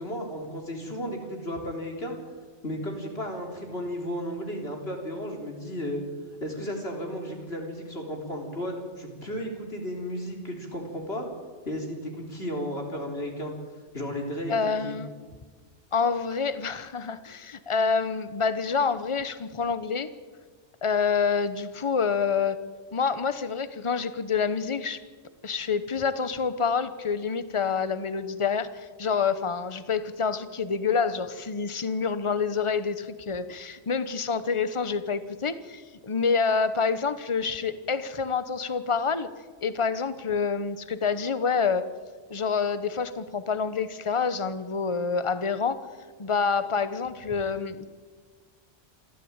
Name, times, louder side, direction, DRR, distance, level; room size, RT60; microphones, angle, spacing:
voice 1, 0.0-2.2 2.6-6.0 6.4-11.3 11.7-13.5 13.9-14.9, equal, 60° left, 2 dB, 4.2 m, -34 dB
voice 2, 14.5-15.1 15.9-20.1 20.8-22.6 22.9-25.0 25.4-39.3 39.6-41.8 42.3-45.8 46.2-47.8, left 5 dB, 30° left, 13 dB, 1.0 m, -27 dB
27.0 x 13.5 x 8.9 m, 1.5 s
omnidirectional pair, 1.2 m